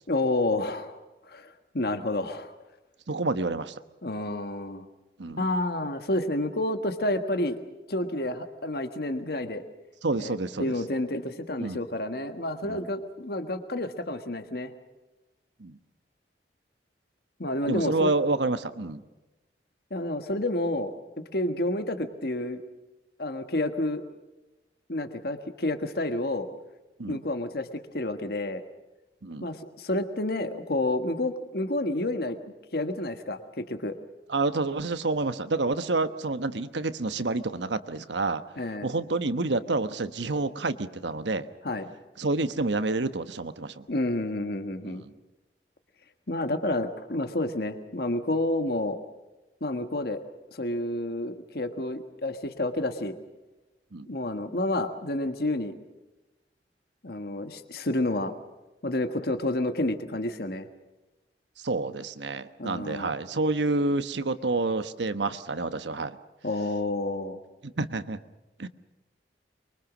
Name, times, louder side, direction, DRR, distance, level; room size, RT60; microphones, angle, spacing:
voice 1, 0.1-1.0 1.3-2.5 4.0-4.9 5.4-7.6 7.9-9.6 10.2-14.7 17.4-18.1 19.9-20.9 21.3-22.6 23.2-24.0 24.9-26.5 27.1-27.7 27.9-28.6 29.4-32.4 32.7-34.0 38.6-38.9 41.6-41.9 43.9-45.0 46.3-49.0 49.6-50.2 50.5-53.2 54.1-55.8 57.0-58.3 58.8-60.7 62.6-63.1 66.4-67.4, left 1 dB, 60° left, 8 dB, 1.5 m, -29 dB
voice 2, 3.1-3.7 5.2-5.4 10.0-10.7 11.6-11.8 12.6-12.8 15.6-15.8 17.7-19.0 27.0-27.2 29.2-29.5 34.3-38.4 38.8-41.5 42.2-43.8 44.8-45.1 53.9-54.1 61.6-66.2 67.8-68.2 68.6-68.7, right 3 dB, 85° right, 11 dB, 1.2 m, -28 dB
24.5 x 23.5 x 6.2 m, 1.1 s
head